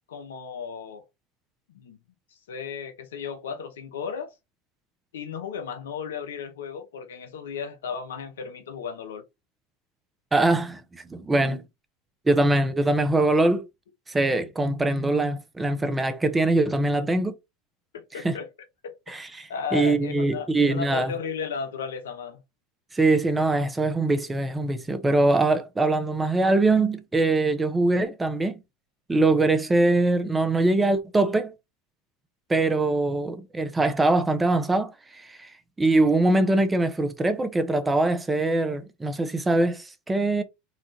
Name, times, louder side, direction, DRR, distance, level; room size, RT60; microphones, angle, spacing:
voice 1, 0.1-1.0 1.7-2.0 2.3-4.3 5.1-9.2 17.9-18.5 18.8-18.9 19.5-22.4, left 6 dB, 85° left, 0.8 m, -34 dB
voice 2, 10.3-11.6 12.3-13.6 14.1-17.3 18.1-18.4 19.1-21.1 22.9-28.6 29.1-31.5 32.5-35.5 35.8-40.4, right 2 dB, 15° right, 0.7 m, -23 dB
4.1 x 2.5 x 4.0 m
hypercardioid pair, 90°, 0 cm